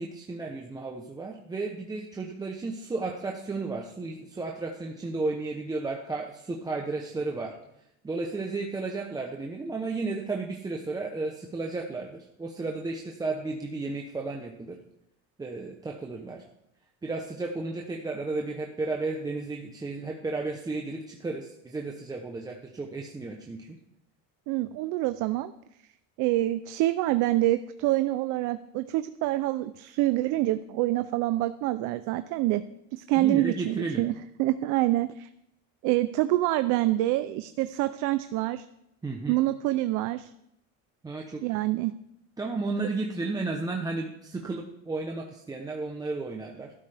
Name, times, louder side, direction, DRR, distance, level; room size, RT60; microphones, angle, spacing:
voice 1, 0.0-7.6 8.0-14.8 15.4-16.4 17.0-23.8 33.2-34.0 39.0-39.4 41.0-41.4 42.4-46.7, right 3 dB, 10° right, 1 dB, 0.8 m, -33 dB
voice 2, 24.5-25.5 26.2-32.6 32.9-35.3 35.8-38.6 39.3-40.3 41.4-41.9, right 16 dB, 65° right, 11 dB, 0.6 m, -26 dB
14.0 x 12.5 x 3.4 m, 0.80 s
cardioid pair, 160°, 33 cm